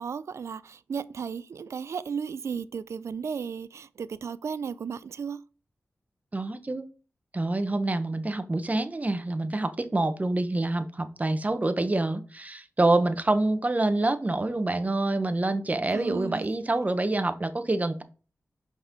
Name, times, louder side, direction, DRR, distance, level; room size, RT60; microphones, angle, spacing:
voice 1, 0.0-5.4 15.9-16.5, right 6 dB, 80° right, 0.4 m, -34 dB
voice 2, 6.3-6.9 7.3-18.0, right 2 dB, 30° right, 1.0 m, -26 dB
5.8 x 4.3 x 5.2 m
cardioid pair, 55°, 5 cm